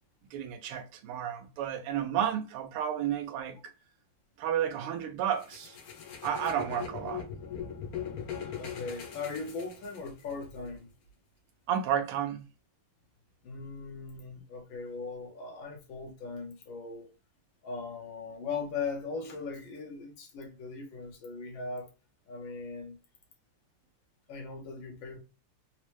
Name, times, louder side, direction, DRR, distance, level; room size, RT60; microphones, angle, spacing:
voice 1, 0.3-3.6 4.4-5.8 6.2-7.3 11.7-12.4, right 9 dB, 90° right, 1.5 m, -32 dB
sound 1, 5.4-10.3, left 8 dB, 85° left, 0.8 m, -40 dB
voice 2, 8.3-10.9 13.4-17.1 17.6-21.9 22.3-23.0 24.3-25.2, left 4 dB, 70° left, 1.4 m, -39 dB
4.1 x 2.1 x 3.0 m
omnidirectional pair, 2.4 m